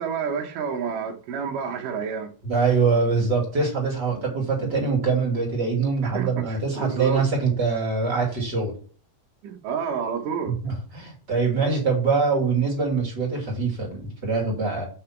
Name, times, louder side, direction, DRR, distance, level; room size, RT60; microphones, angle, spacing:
voice 1, 0.0-2.3 6.1-7.2 9.4-10.6, right 6 dB, 65° right, 2.6 m, -29 dB
voice 2, 2.4-8.7 10.4-14.8, right 4 dB, 30° right, 2.6 m, -24 dB
5.8 x 5.7 x 5.8 m
omnidirectional pair, 4.3 m